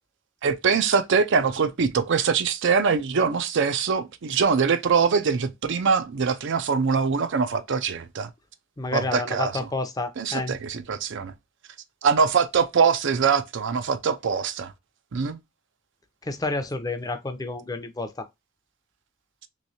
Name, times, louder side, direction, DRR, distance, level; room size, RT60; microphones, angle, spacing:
voice 1, 0.4-8.3 8.9-9.7 10.2-11.3 12.0-14.7 15.1-15.4, right 5 dB, 65° right, 0.5 m, -23 dB
voice 2, 8.8-10.6 16.2-18.3, left 2 dB, 20° left, 0.5 m, -30 dB
3.1 x 3.1 x 2.6 m
head